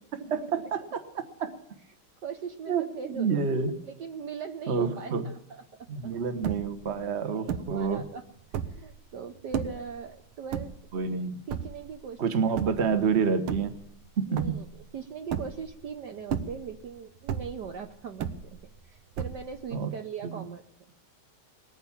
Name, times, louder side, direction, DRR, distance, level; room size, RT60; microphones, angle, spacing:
voice 1, 0.2-1.5 2.7-3.8 4.7-5.3 5.9-8.0 10.9-11.4 12.2-13.7 14.2-14.6 19.7-19.9 20.2-20.4, right 6 dB, 35° right, 9 dB, 1.3 m, -28 dB
voice 2, 2.2-3.4 3.8-6.1 7.3-8.2 8.7-10.7 11.5-12.4 14.3-18.6 18.9-20.6, right 6 dB, 60° right, 6 dB, 1.4 m, -40 dB
sound 1, 6.4-6.9 7.5-7.9 8.4-8.9 9.5-9.9 10.5-11.1 11.5-12.0 12.6-13.0 13.4-14.1 14.4-14.9 15.3-15.8 16.2-16.9 17.3-17.8 18.2-18.8 19.2-19.7, right 8 dB, 90° right, 1.8 m, -33 dB
20.0 x 9.4 x 7.3 m, 0.77 s
omnidirectional pair, 2.3 m